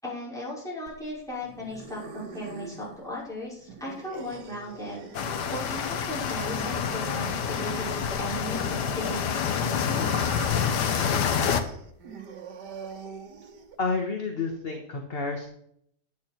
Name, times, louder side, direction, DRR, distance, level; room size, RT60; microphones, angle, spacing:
voice 1, 0.0-5.0 5.5-10.1, left 1 dB, ahead, -8 dB, 5.5 m, -37 dB
sound 1, 0.9-13.9, right 5 dB, 85° right, 1.8 m, -43 dB
sound 2, 5.1-11.6, left 7 dB, 90° left, 1.5 m, -27 dB
voice 2, 13.8-15.5, left 4 dB, 40° left, 3 dB, 1.3 m, -30 dB
10.5 x 9.8 x 4.4 m, 0.69 s
omnidirectional pair, 1.8 m